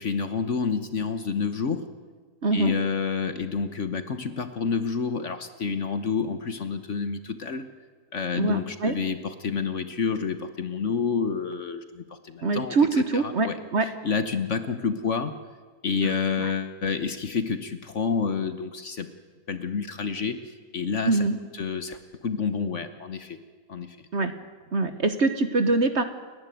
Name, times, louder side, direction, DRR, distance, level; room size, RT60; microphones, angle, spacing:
voice 1, 0.0-1.9 2.5-7.7 8.1-15.3 15.8-19.1 19.5-21.3 21.5-23.4 23.7-24.1, left 5 dB, 50° left, 10 dB, 1.2 m, -29 dB
voice 2, 2.4-2.7 8.3-9.0 12.4-13.9 16.0-16.1 16.4-16.5 21.0-21.4 24.1-24.3 24.7-26.0, right 3 dB, 45° right, 9 dB, 1.3 m, -24 dB
29.5 x 11.0 x 9.3 m, 1.5 s
omnidirectional pair, 1.8 m